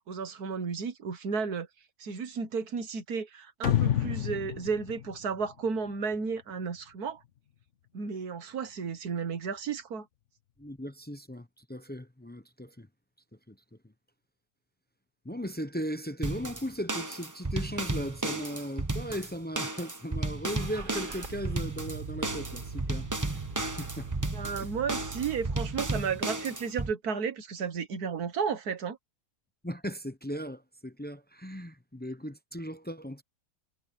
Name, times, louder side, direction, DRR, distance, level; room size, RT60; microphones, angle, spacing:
voice 1, 0.1-1.7 2.0-7.2 7.9-10.1 24.2-29.0, right 5 dB, 75° right, 1.9 m, -33 dB
sound 1, 3.6-6.2, left 10 dB, 55° left, 1.1 m, -29 dB
voice 2, 10.6-12.9 13.5-13.6 15.2-24.3 29.6-33.2, equal, 15° left, 0.4 m, -37 dB
sound 2, 16.2-26.9, right 2 dB, 15° right, 1.0 m, -33 dB
Car / Engine starting, 20.4-25.9, right 5 dB, 35° right, 1.7 m, -41 dB
omnidirectional pair, 1.6 m